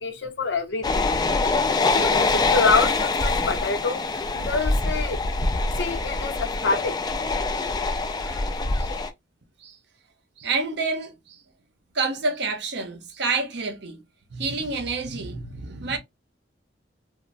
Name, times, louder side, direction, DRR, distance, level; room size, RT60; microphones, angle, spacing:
voice 1, 0.0-1.1 1.9-4.0 4.3-5.2 5.8-7.0, left 4 dB, 65° left, 0.6 m, -26 dB
sound 1, 0.8-9.1, left 3 dB, 20° left, 0.3 m, -24 dB
voice 2, 8.2-8.9 9.6-9.8 10.4-11.4 11.9-14.0 14.3-16.0, right 3 dB, 60° right, 0.6 m, -29 dB
3.0 x 2.0 x 2.5 m
head